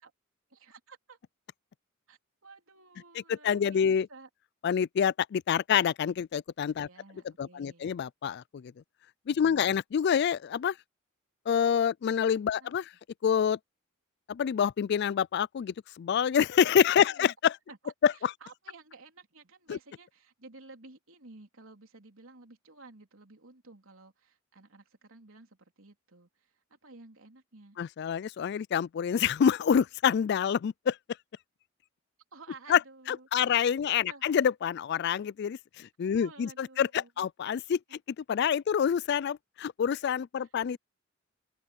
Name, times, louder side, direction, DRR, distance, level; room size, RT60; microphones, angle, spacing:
voice 1, 0.5-1.2 2.1-4.3 6.8-7.9 9.4-9.8 12.6-12.8 17.0-17.3 17.7-27.8 32.3-33.6 34.1-34.3 36.1-37.1 37.9-38.0 40.4-40.5, right 3 dB, 80° right, 3.6 m, -53 dB
voice 2, 3.3-4.1 4.6-6.9 7.4-8.7 9.3-10.7 11.5-12.8 13.2-13.6 14.3-17.5 18.0-18.1 19.7-19.8 27.8-31.0 32.7-32.8 33.1-37.8 38.3-40.8, left 8 dB, 55° left, 0.3 m, -27 dB
open air
head